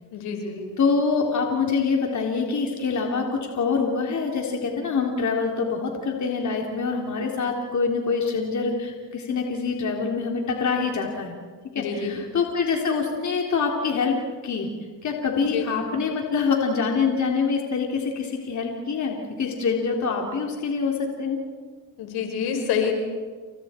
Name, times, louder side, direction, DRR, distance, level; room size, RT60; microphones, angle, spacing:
voice 1, 0.1-0.6 11.8-12.2 15.5-15.7 22.0-23.0, left 7 dB, 75° left, 3 dB, 5.3 m, -27 dB
voice 2, 0.8-11.4 11.8-14.2 14.4-14.7 15.0-21.4, left 5 dB, 45° left, 1 dB, 3.5 m, -25 dB
29.5 x 27.0 x 4.5 m, 1.5 s
supercardioid pair, 70°, 38 cm